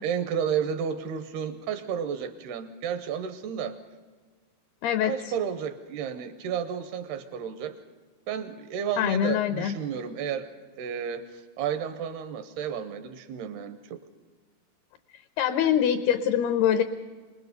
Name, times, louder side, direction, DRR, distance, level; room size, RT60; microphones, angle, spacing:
voice 1, 0.0-3.8 5.0-7.8 8.3-10.5 10.8-14.0, right 8 dB, 80° right, 10 dB, 2.5 m, -32 dB
voice 2, 4.8-5.1 9.0-9.7 15.4-16.8, left 9 dB, 80° left, 11 dB, 2.3 m, -24 dB
26.0 x 20.0 x 6.6 m, 1.4 s
omnidirectional pair, 5.5 m